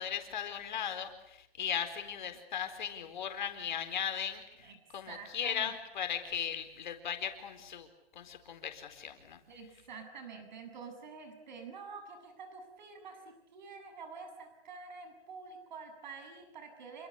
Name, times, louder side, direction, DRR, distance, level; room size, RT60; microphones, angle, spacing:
voice 1, 0.0-7.9 8.1-9.4, left 8 dB, 50° left, 7 dB, 4.4 m, -37 dB
voice 2, 4.6-5.7 9.5-17.1, right 5 dB, 50° right, 8 dB, 7.6 m, -48 dB
28.0 x 25.5 x 8.2 m, 0.77 s
hypercardioid pair, 175°, 30 cm